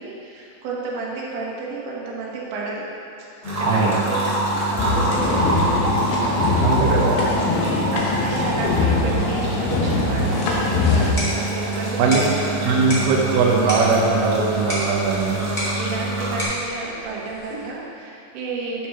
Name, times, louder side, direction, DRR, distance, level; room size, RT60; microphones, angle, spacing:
voice 1, 0.0-2.8 3.2-6.6 6.9-13.0 15.3-18.9, right 3 dB, 90° right, -4 dB, 3.6 m, -32 dB
sound 1, 3.4-16.4, right 1 dB, 55° right, 0.8 m, -26 dB
sound 2, 4.8-11.1, left 3 dB, 75° left, 2.6 m, -22 dB
voice 2, 6.6-7.2 12.0-12.2 12.6-15.3, right 4 dB, 75° right, -2 dB, 2.6 m, -20 dB
sound 3, 10.8-17.8, equal, 90° left, 0.5 m, -32 dB
11.5 x 6.6 x 3.0 m, 2.6 s
omnidirectional pair, 5.1 m